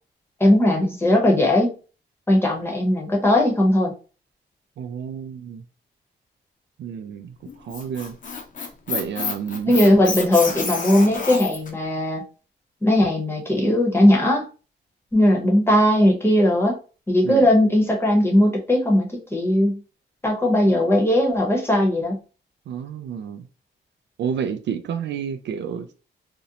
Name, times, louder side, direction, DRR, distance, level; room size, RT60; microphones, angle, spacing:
voice 1, 0.4-1.8 2.3-3.9 9.7-12.2 12.8-14.5 15.1-16.8 17.1-19.8 20.2-22.2, left 1 dB, 10° left, 0.8 m, -18 dB
voice 2, 4.8-5.6 6.8-8.2 8.9-9.7 17.2-17.5 22.7-23.5 24.2-25.9, right 7 dB, 65° right, 0.4 m, -30 dB
Squeak, 7.5-11.7, left 4 dB, 40° left, 0.6 m, -29 dB
2.5 x 2.0 x 2.8 m
cardioid pair, 95°, 20 cm